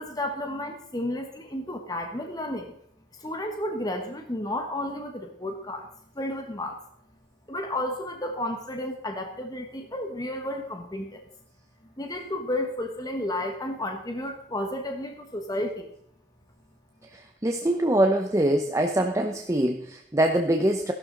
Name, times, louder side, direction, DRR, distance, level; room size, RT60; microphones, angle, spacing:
voice 1, 0.0-2.7 3.1-5.9 6.1-6.8 7.5-11.2 11.8-15.9, left 1 dB, 20° left, 4 dB, 1.2 m, -32 dB
voice 2, 17.1-20.9, right 1 dB, 15° right, 4 dB, 0.7 m, -24 dB
15.5 x 12.0 x 3.9 m, 0.68 s
head